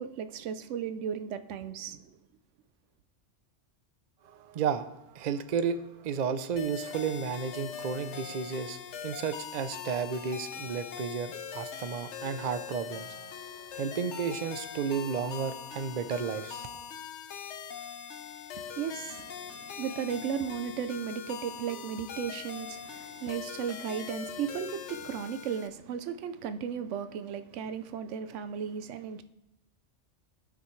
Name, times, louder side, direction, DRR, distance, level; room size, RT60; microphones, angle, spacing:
voice 1, 0.0-2.2 18.6-29.2, right 8 dB, 90° right, 0.9 m, -35 dB
voice 2, 4.4-4.9 5.1-16.8, right 6 dB, 50° right, 0.6 m, -33 dB
sound 1, 6.6-25.7, left 8 dB, 80° left, 1.0 m, -42 dB
16.5 x 5.9 x 3.2 m
omnidirectional pair, 1.2 m